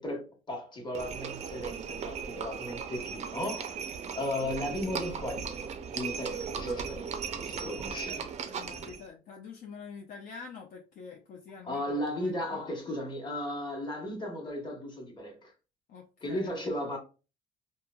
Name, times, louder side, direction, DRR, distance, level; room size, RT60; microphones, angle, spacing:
voice 1, 0.0-3.8 4.1-5.5 5.9-8.2 11.6-15.5 16.2-17.0, left 1 dB, 25° left, 1.0 m, -35 dB
Livestock farm animals working animals, 0.9-9.1, right 6 dB, 40° right, 0.4 m, -37 dB
voice 2, 7.9-12.6 15.9-16.6, left 5 dB, 55° left, 0.5 m, -47 dB
3.0 x 2.2 x 2.2 m
cardioid pair, 110°, 17 cm